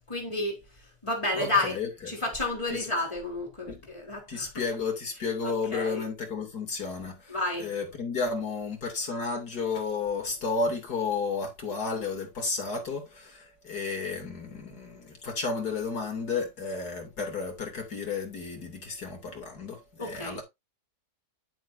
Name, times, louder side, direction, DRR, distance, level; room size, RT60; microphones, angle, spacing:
voice 1, 0.1-0.6 1.0-1.8 2.1-4.5 5.4-6.1 7.3-7.7 20.0-20.4, left 2 dB, 20° left, 4.2 m, -31 dB
voice 2, 1.3-2.1 2.7-2.9 3.7-3.8 4.3-20.4, left 4 dB, 85° left, 3.6 m, -32 dB
12.5 x 7.6 x 2.7 m
omnidirectional pair, 1.6 m